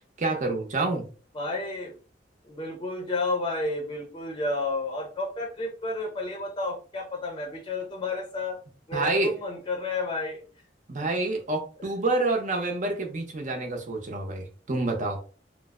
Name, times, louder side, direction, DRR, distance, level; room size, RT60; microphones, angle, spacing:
voice 1, 0.2-1.0 8.9-9.3 10.9-15.2, right 2 dB, 45° right, 3 dB, 0.8 m, -28 dB
voice 2, 1.3-1.9 2.4-8.6 8.9-10.4 11.8-11.9, left 2 dB, 25° left, 1 dB, 0.6 m, -31 dB
3.3 x 2.1 x 3.5 m, 0.38 s
head